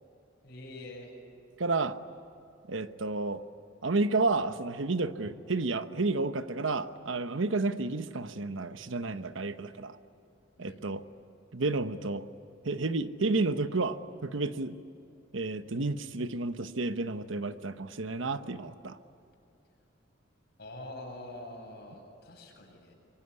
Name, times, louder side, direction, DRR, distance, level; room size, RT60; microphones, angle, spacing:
voice 1, 0.4-1.1 10.6-10.8 20.6-22.9, left 1 dB, 55° left, 0 dB, 7.4 m, -45 dB
voice 2, 1.6-2.0 2.7-3.4 3.8-10.0 10.6-11.0 11.5-12.2 12.6-14.8 15.3-19.0, right 3 dB, 85° right, 11 dB, 1.1 m, -31 dB
26.0 x 23.5 x 9.8 m, 2.7 s
head